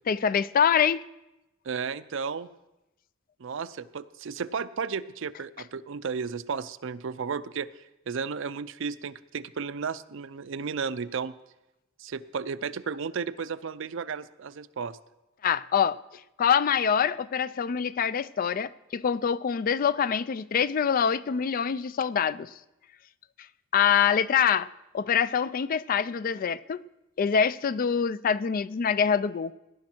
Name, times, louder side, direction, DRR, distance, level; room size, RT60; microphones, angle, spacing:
voice 1, 0.1-1.0 15.4-16.0 16.4-22.5 23.7-24.7 24.9-26.8 27.2-29.5, left 7 dB, 45° left, 17 dB, 0.4 m, -25 dB
voice 2, 1.6-2.5 3.4-7.7 8.1-11.3 12.0-15.0, right 5 dB, 70° right, 14 dB, 0.5 m, -33 dB
18.0 x 10.5 x 4.4 m, 0.94 s
head